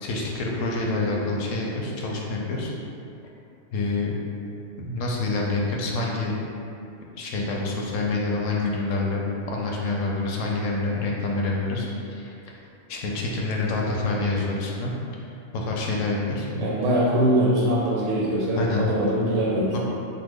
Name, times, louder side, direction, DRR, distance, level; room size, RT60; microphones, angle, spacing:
voice 1, 0.0-2.7 3.7-4.1 4.8-6.3 7.2-9.2 9.5-12.3 12.9-14.9 15.5-16.5 18.5-18.8 19.7-19.8, left 2 dB, 85° left, -2 dB, 0.9 m, -27 dB
voice 2, 16.5-19.7, right 1 dB, 90° right, -6 dB, 0.9 m, -22 dB
3.2 x 2.1 x 3.5 m, 2.6 s
omnidirectional pair, 1.3 m